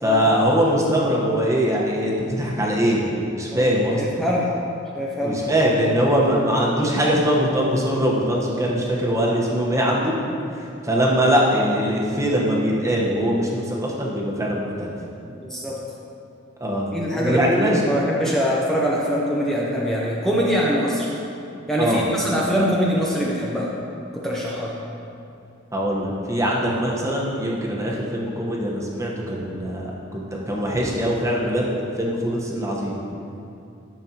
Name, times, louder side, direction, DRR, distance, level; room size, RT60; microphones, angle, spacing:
voice 1, 0.0-3.1 3.3-4.2 5.2-10.1 10.8-14.9 16.6-16.9 17.1-17.8 21.8-22.2 25.7-33.0, equal, 15° right, -3 dB, 1.1 m, -22 dB
voice 2, 4.0-4.5 5.0-5.4 15.4-15.8 16.9-21.1 21.7-23.7 24.1-24.8, equal, ahead, -5 dB, 0.7 m, -23 dB
12.5 x 7.0 x 2.9 m, 2.6 s
head